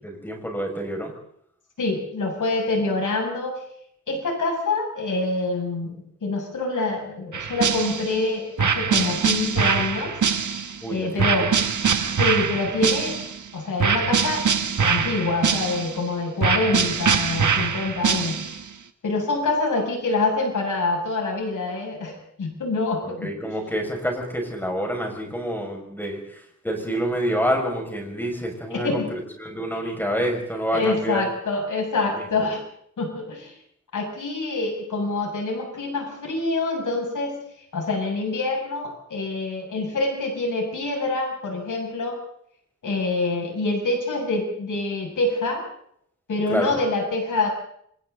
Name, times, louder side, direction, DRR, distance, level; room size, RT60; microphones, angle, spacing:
voice 1, 0.0-1.1 10.8-11.5 23.0-31.2 32.1-32.2 46.5-46.8, equal, 5° left, 1 dB, 6.2 m, -28 dB
voice 2, 1.8-3.6 4.1-10.2 10.9-11.5 12.2-13.1 13.5-14.5 14.8-18.4 19.0-23.3 26.9-27.0 28.7-29.1 29.9-30.0 30.7-32.6 33.0-33.5 33.9-37.4 37.7-42.2 42.8-45.6 46.3-47.5, left 3 dB, 90° left, 1 dB, 7.1 m, -26 dB
sound 1, 7.3-8.2 8.6-10.8 11.2-13.4 13.8-16.0 16.4-18.6, right 6 dB, 80° right, 1.8 m, -23 dB
28.0 x 26.5 x 4.0 m, 0.68 s
wide cardioid pair, 175°, 30 cm